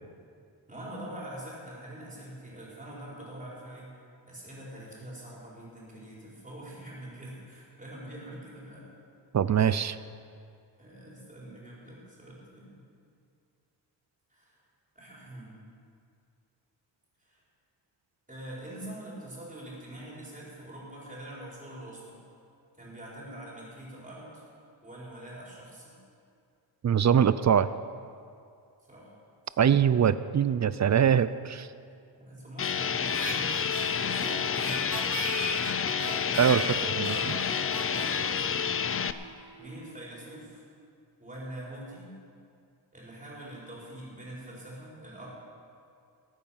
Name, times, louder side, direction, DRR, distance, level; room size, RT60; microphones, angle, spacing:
voice 1, 0.7-3.9 4.2-8.9 10.8-12.8 14.3-14.6 14.9-15.5 17.2-17.4 18.3-22.2 22.8-24.4 24.8-26.0 28.9-29.1 29.5-29.7 32.1-35.0 36.0-38.6 39.6-40.6 41.2-42.1 42.9-45.3, right 1 dB, 15° right, -6 dB, 4.3 m, -44 dB
voice 2, 9.3-10.0 26.8-27.7 29.6-31.7 36.4-36.6 37.0-37.1, right 8 dB, 40° right, 15 dB, 0.4 m, -23 dB
sound 1, 32.6-39.1, left 7 dB, 30° left, 0.4 m, -29 dB
Harmonica, 33.0-39.5, right 2 dB, 60° right, 3.5 m, -38 dB
20.0 x 8.9 x 5.7 m, 2.4 s
wide cardioid pair, 125°, 44 cm